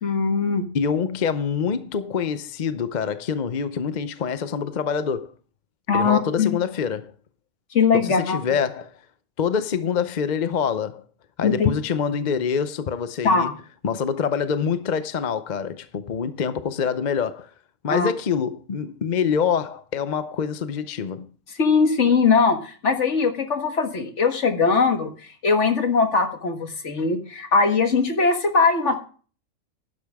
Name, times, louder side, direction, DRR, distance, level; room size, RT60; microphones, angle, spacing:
voice 1, 0.0-0.6 5.9-6.6 7.7-8.6 11.4-11.7 13.2-13.5 17.9-18.1 21.6-25.1 25.4-29.0, left 4 dB, 60° left, 1.8 m, -20 dB
voice 2, 0.7-5.3 5.9-7.1 7.9-9.0 9.4-11.0 11.4-13.5 13.8-17.5 17.8-21.3, left 6 dB, 45° left, 0.7 m, -25 dB
12.0 x 10.5 x 3.5 m
omnidirectional pair, 1.4 m